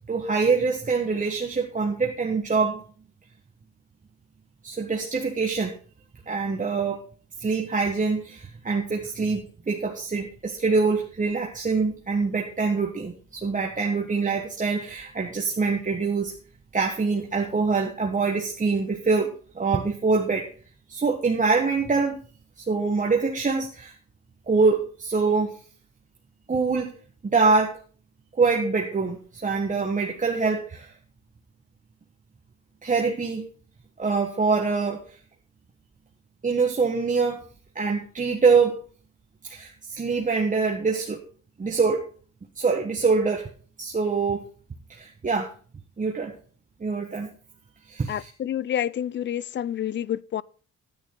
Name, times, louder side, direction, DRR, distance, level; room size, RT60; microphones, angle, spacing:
voice 1, 0.1-2.8 4.6-5.7 6.3-7.0 7.4-16.3 16.7-20.5 20.9-22.2 22.6-23.9 24.5-25.6 26.5-26.9 27.2-27.8 28.3-30.9 32.8-33.5 34.0-35.0 36.4-37.4 37.7-38.8 39.5-41.2 41.6-42.0 42.6-43.5 43.8-44.5 44.9-45.5 46.0-46.3 46.8-47.3 47.9-48.3, right 4 dB, 25° right, 1.4 m, -24 dB
voice 2, 48.1-50.4, left 10 dB, 40° left, 0.4 m, -28 dB
10.0 x 9.1 x 3.9 m
cardioid pair, 90°, 30 cm